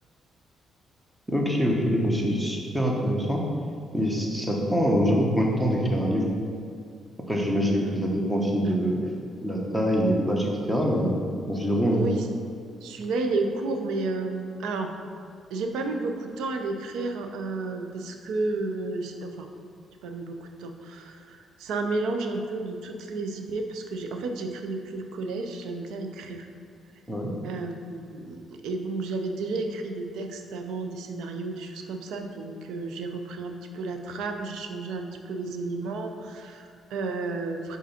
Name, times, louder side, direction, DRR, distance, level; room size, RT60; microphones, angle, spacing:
voice 1, 1.3-3.4 3.9-6.3 7.3-9.0 9.4-12.1 27.1-27.3, equal, 5° right, -1 dB, 1.0 m, -24 dB
voice 2, 11.9-12.3 12.8-14.9 15.5-19.5 20.0-26.5 27.4-37.8, right 3 dB, 90° right, 4 dB, 0.5 m, -32 dB
5.0 x 3.9 x 5.7 m, 2.3 s
cardioid pair, 110°, 0 cm